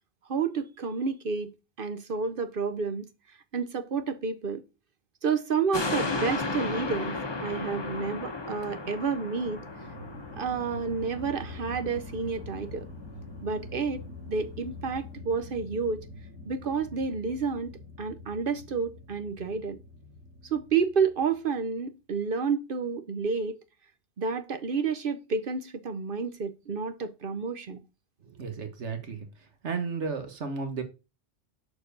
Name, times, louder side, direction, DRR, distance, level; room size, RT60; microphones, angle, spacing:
voice 1, 0.3-1.5 1.8-3.0 3.5-4.6 5.2-7.2 7.4-9.6 10.3-12.9 13.4-16.1 16.4-17.7 18.0-19.8 20.4-23.5 24.2-27.8, right 5 dB, 55° right, 0.9 m, -30 dB
sound 1, 5.7-12.4 12.8-12.9, left 3 dB, 25° left, 0.9 m, -34 dB
sound 2, 9.3-21.6, left 2 dB, 10° right, 1.8 m, -45 dB
voice 2, 28.2-29.3 29.6-30.8, right 5 dB, 85° right, 1.5 m, -33 dB
6.8 x 4.5 x 6.6 m
omnidirectional pair, 1.2 m